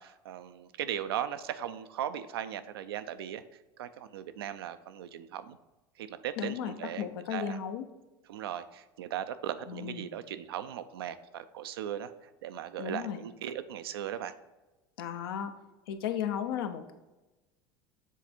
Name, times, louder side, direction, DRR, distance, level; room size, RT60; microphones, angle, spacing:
voice 1, 0.0-3.4 3.8-5.6 6.0-7.6 8.3-12.1 12.4-14.3, right 10 dB, 85° right, 11 dB, 0.4 m, -38 dB
voice 2, 6.4-7.9 9.7-10.1 12.8-13.2 15.0-15.5 15.9-16.9, left 9 dB, 80° left, 8 dB, 0.6 m, -35 dB
7.3 x 3.4 x 4.3 m, 1.1 s
hypercardioid pair, 85°, 12 cm